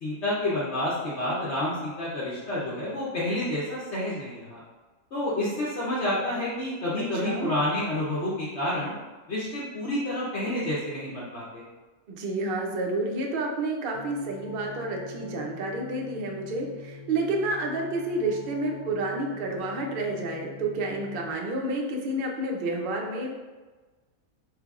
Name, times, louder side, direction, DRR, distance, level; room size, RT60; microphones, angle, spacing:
voice 1, 0.0-4.6 5.1-8.9 9.3-11.6, left 1 dB, 55° left, -8 dB, 1.0 m, -29 dB
voice 2, 7.0-7.5 12.1-23.3, right 2 dB, 55° right, 0 dB, 0.6 m, -30 dB
sound 1, 13.9-21.3, left 3 dB, 85° left, 1.1 m, -44 dB
4.9 x 3.3 x 2.4 m, 1.3 s
omnidirectional pair, 1.5 m